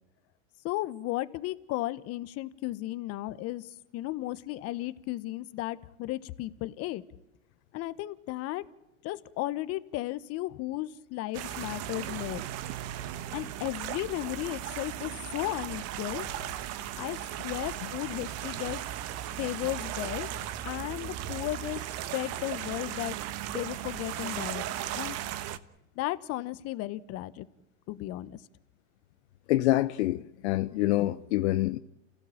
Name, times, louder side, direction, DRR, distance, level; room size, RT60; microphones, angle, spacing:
voice 1, 0.6-7.0 7.7-8.6 9.0-12.4 13.3-16.3 16.9-18.8 19.4-20.3 20.6-21.9 22.1-23.2 23.5-24.6 24.9-25.2 26.0-27.5 27.9-28.4, left 16 dB, 40° left, 1.2 m, -35 dB
sound 1, 11.3-25.6, right 12 dB, 40° right, 1.3 m, -37 dB
voice 2, 29.5-31.8, left 16 dB, 60° left, 0.9 m, -26 dB
28.5 x 16.0 x 8.7 m
hypercardioid pair, 120°, 38 cm